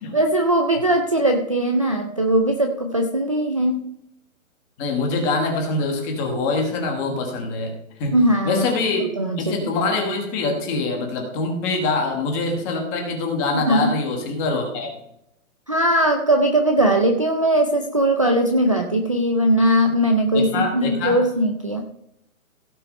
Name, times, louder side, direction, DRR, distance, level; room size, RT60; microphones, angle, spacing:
voice 1, 0.1-3.9 8.1-8.7 9.2-9.7 13.7-13.9 15.7-21.8, right 1 dB, 25° right, 3 dB, 0.5 m, -19 dB
voice 2, 4.8-7.7 8.0-8.2 8.4-9.0 9.4-14.9 20.3-21.2, left 3 dB, 15° left, 2 dB, 1.3 m, -24 dB
16.5 x 5.7 x 5.2 m, 0.78 s
hypercardioid pair, 175°, 42 cm